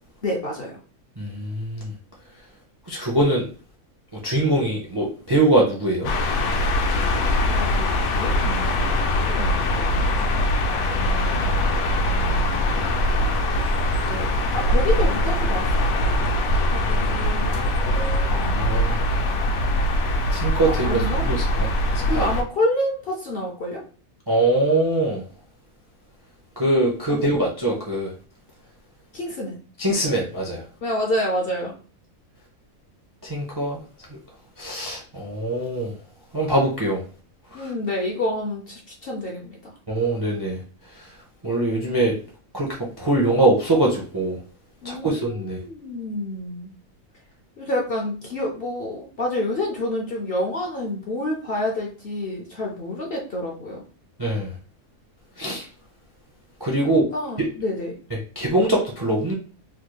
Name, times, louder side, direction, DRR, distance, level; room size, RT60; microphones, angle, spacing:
voice 1, 0.2-0.8 7.5-10.0 10.9-12.5 14.0-15.7 16.0-16.2 16.7-18.9 20.7-21.3 22.0-23.8 27.1-27.2 29.1-29.6 30.8-31.8 37.5-39.7 44.8-46.7 47.6-53.8 56.8-58.0, left 1 dB, 55° left, -1 dB, 0.7 m, -29 dB
voice 2, 1.2-1.9 2.9-3.5 4.2-6.1 18.3-18.9 20.3-21.7 22.1-22.3 24.3-25.2 26.6-28.1 29.8-30.6 33.2-33.8 34.6-35.9 36.3-37.0 37.5-37.7 39.9-40.6 41.4-42.2 42.5-44.4 44.8-45.6 54.2-54.5 55.4-55.7 56.6-57.1 58.4-59.3, right 1 dB, 30° right, -3 dB, 0.4 m, -22 dB
sound 1, 6.0-22.4, left 1 dB, 70° left, 1.0 m, -22 dB
3.4 x 3.1 x 2.3 m, 0.39 s
omnidirectional pair, 1.5 m